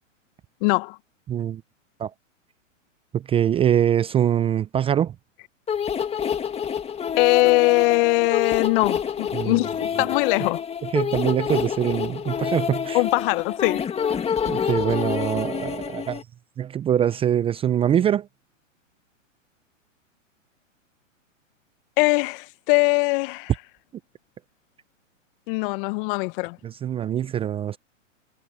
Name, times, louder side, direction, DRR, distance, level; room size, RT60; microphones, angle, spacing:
voice 1, 0.6-1.0 7.2-10.6 12.9-13.8 22.0-23.5 25.5-26.6, left 24 dB, 40° left, 1.5 m, -21 dB
voice 2, 1.3-1.6 2.0-2.1 3.1-5.1 9.3-9.6 10.0-10.1 10.9-13.0 14.5-16.2 16.6-18.3 26.6-27.8, right 10 dB, 15° right, 0.6 m, -23 dB
sound 1, 5.7-16.2, left 7 dB, 15° left, 2.0 m, -27 dB
hypercardioid pair, 125°, 39 cm